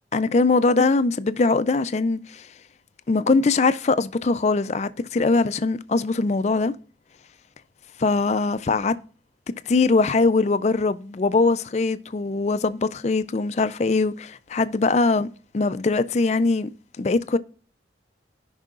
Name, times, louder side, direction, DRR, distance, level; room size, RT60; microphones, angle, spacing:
voice 1, 0.1-2.5 3.1-6.7 8.0-9.0 9.7-15.3 15.5-16.7 17.0-17.4, left 3 dB, 40° left, 0.4 m, -21 dB
16.5 x 5.5 x 2.4 m
head